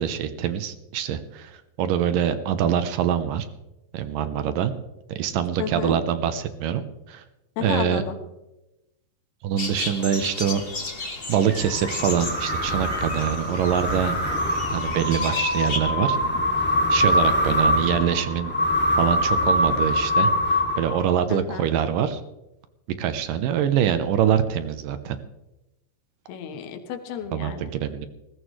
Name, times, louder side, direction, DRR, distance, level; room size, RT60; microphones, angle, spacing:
voice 1, 0.0-3.5 3.9-4.7 5.2-6.8 7.1-7.2 7.6-8.0 9.4-10.6 11.0-14.2 14.7-16.2 16.9-18.5 19.0-22.2 23.0-25.2 27.3-28.1, right 9 dB, 75° right, 10 dB, 2.3 m, -24 dB
voice 2, 5.6-6.0 7.6-8.2 16.1-16.3 21.3-21.7 26.3-27.7, left 7 dB, 80° left, 5 dB, 3.4 m, -32 dB
sound 1, 9.6-15.8, left 3 dB, 45° left, 0.7 m, -33 dB
sound 2, 11.6-21.3, left 1 dB, 5° left, 1.1 m, -24 dB
20.0 x 16.0 x 3.2 m, 0.94 s
omnidirectional pair, 4.5 m